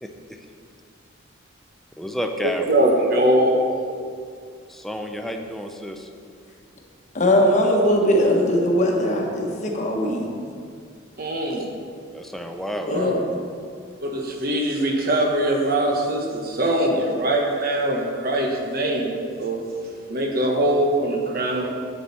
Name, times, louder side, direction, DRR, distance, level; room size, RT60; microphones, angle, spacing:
voice 1, 0.0-0.4 2.0-2.7 4.7-6.1 12.1-12.9, equal, ahead, 4 dB, 0.5 m, -31 dB
voice 2, 2.7-3.6 11.2-11.7 12.9-13.1 14.0-19.6 20.1-21.7, right 1 dB, 50° right, 1 dB, 1.2 m, -22 dB
voice 3, 7.1-10.3 12.7-13.2, left 1 dB, 35° left, 0 dB, 1.2 m, -20 dB
8.5 x 7.6 x 4.2 m, 2.3 s
head